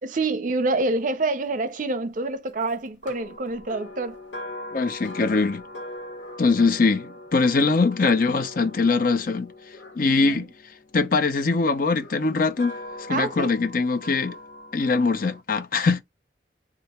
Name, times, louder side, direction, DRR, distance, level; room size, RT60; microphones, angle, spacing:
voice 1, 0.0-4.2 10.0-10.5 13.1-13.6, right 2 dB, 45° right, 0.6 m, -27 dB
sound 1, 3.0-11.2 11.9-15.4, left 1 dB, 90° left, 1.2 m, -41 dB
voice 2, 4.7-5.6 6.4-9.5 10.0-10.5 10.9-12.7 13.1-14.4 14.7-16.0, left 4 dB, 50° left, 0.6 m, -22 dB
2.8 x 2.5 x 4.3 m
head